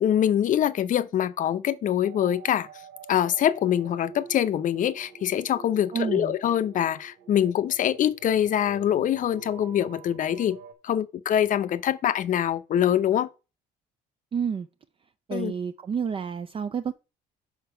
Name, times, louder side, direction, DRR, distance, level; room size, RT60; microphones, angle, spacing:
voice 1, 0.0-2.7 3.1-10.6 10.8-13.3 15.3-15.5, left 10 dB, 50° left, 0.6 m, -24 dB
sound 1, 2.0-10.7, right 7 dB, 85° right, 1.3 m, -47 dB
voice 2, 5.9-6.4 14.3-14.7 15.3-16.9, right 6 dB, 30° right, 0.5 m, -29 dB
5.8 x 4.7 x 5.6 m
cardioid pair, 110°, 17 cm